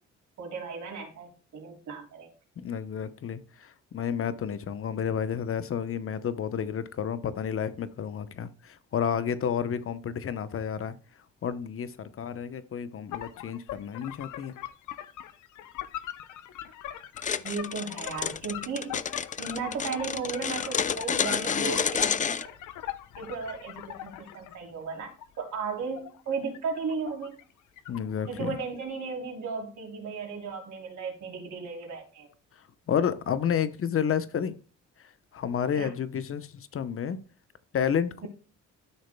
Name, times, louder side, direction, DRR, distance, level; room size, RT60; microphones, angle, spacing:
voice 1, 0.4-2.3 17.4-19.0 19.4-22.5 23.2-27.4 28.3-32.3 35.7-35.9 38.2-38.3, right 5 dB, 65° right, 3.2 m, -35 dB
voice 2, 2.6-11.0 11.4-14.5 27.9-28.6 32.9-34.5 35.3-37.2 37.7-38.3, left 8 dB, 45° left, 0.9 m, -30 dB
Sound Effect, 13.1-24.6 25.0-27.5 27.8-28.6, left 12 dB, 85° left, 0.8 m, -42 dB
sound 1, 17.2-22.4, left 7 dB, 25° left, 0.4 m, -29 dB
12.5 x 6.4 x 2.2 m
cardioid pair, 90°, 30 cm